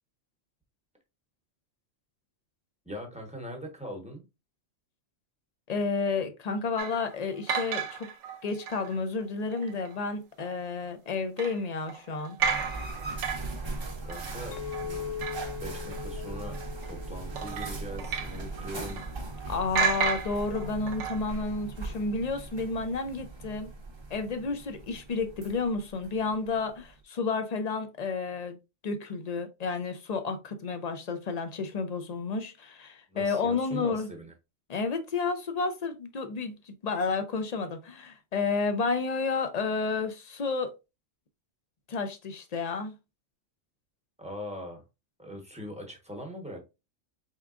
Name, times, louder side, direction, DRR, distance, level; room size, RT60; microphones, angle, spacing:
voice 1, 2.8-4.2 14.0-15.1 15.4-16.6 16.9-19.0 33.1-34.3 44.2-44.8 45.2-46.6, equal, 5° right, 0.9 m, -41 dB
voice 2, 5.7-8.1 8.4-12.4 19.5-23.7 24.1-28.6 28.8-34.1 34.7-40.7 41.9-42.9, left 4 dB, 45° left, 0.6 m, -31 dB
sound 1, 6.8-9.0 9.5-10.0 10.4-10.5 11.4-15.7 15.9-16.0 16.5-16.9 17.4-19.5 19.7-21.3, right 6 dB, 70° right, 0.9 m, -33 dB
sound 2, 12.4-27.0, right 3 dB, 30° right, 0.6 m, -39 dB
Chink clink, 14.5-19.0, left 9 dB, 80° left, 1.0 m, -41 dB
4.5 x 3.5 x 2.4 m
omnidirectional pair, 1.3 m